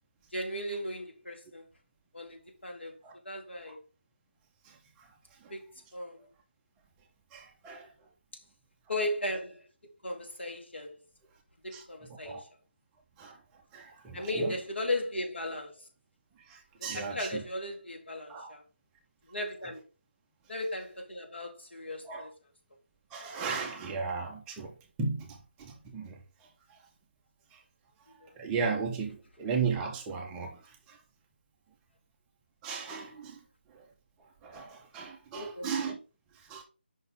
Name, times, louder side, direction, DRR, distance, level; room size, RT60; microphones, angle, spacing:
voice 1, 0.3-1.7 2.1-3.0 3.2-3.8 5.5-5.7 5.9-6.3 8.9-9.6 10.0-11.0 11.6-12.5 14.1-15.9 16.8-18.6 19.3-19.8 20.5-22.3 28.2-28.4 35.4-35.7, left 1 dB, 85° left, 2.2 m, -36 dB
voice 2, 4.6-5.1 5.4-5.5 7.3-7.9 11.7-11.8 12.2-12.4 13.2-13.4 13.7-14.5 16.5-17.4 18.3-18.5 22.0-22.3 23.1-24.7 25.0-26.2 26.7-26.8 27.5-27.6 28.1-31.0 32.6-33.4 33.7-33.8 34.4-36.0 36.3-36.6, right 5 dB, 10° right, 0.5 m, -36 dB
5.5 x 3.9 x 5.2 m
figure-of-eight pair, 165°, 6 cm